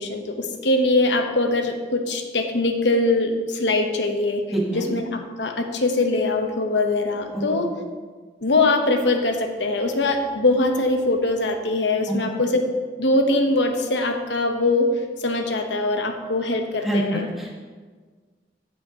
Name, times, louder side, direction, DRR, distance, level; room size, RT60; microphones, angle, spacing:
voice 1, 0.0-4.4 4.7-7.7 8.4-12.7 13.0-14.9 15.2-17.3, left 2 dB, 90° left, 5 dB, 1.0 m, -22 dB
voice 2, 4.5-4.9 7.6-7.7 16.8-17.5, right 1 dB, ahead, -5 dB, 1.6 m, -25 dB
15.5 x 5.7 x 2.9 m, 1.5 s
head